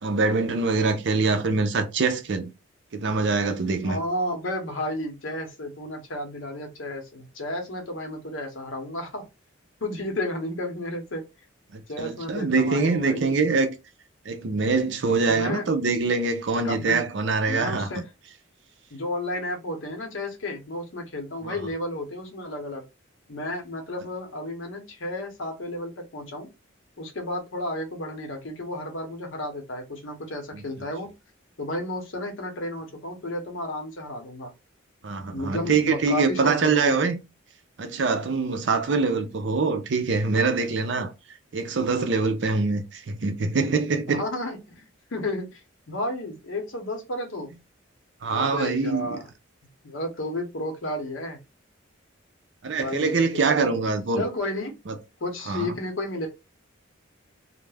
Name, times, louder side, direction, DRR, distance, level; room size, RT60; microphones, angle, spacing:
voice 1, 0.0-2.5 2.9-4.0 11.7-13.7 14.3-17.9 21.4-21.6 30.5-30.6 35.0-37.2 37.8-41.1 41.5-44.2 48.2-49.2 52.6-54.2 54.9-55.0 55.5-55.7, right 4 dB, 60° right, 0.4 m, -24 dB
voice 2, 3.8-9.3 9.8-11.2 11.9-13.4 15.3-15.7 16.6-17.1 17.5-18.1 18.9-22.8 23.3-26.5 27.0-31.1 31.6-34.5 35.3-37.0 44.1-47.5 48.3-49.2 49.8-51.4 52.7-53.7 54.2-54.8 55.2-56.3, left 1 dB, 70° left, 0.8 m, -32 dB
2.3 x 2.0 x 3.2 m
head